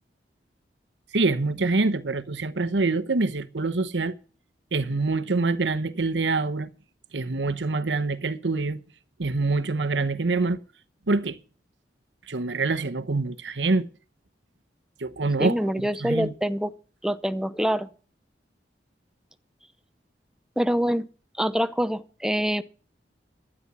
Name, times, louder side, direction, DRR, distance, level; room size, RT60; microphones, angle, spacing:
voice 1, 1.1-4.2 4.7-6.7 7.1-8.8 9.2-10.6 11.1-11.4 12.3-13.9 15.0-16.3, right 3 dB, 90° right, 1.0 m, -25 dB
voice 2, 15.4-16.7 17.0-17.9 20.6-21.1 21.4-22.6, equal, 5° right, 0.7 m, -25 dB
12.5 x 9.9 x 6.1 m
head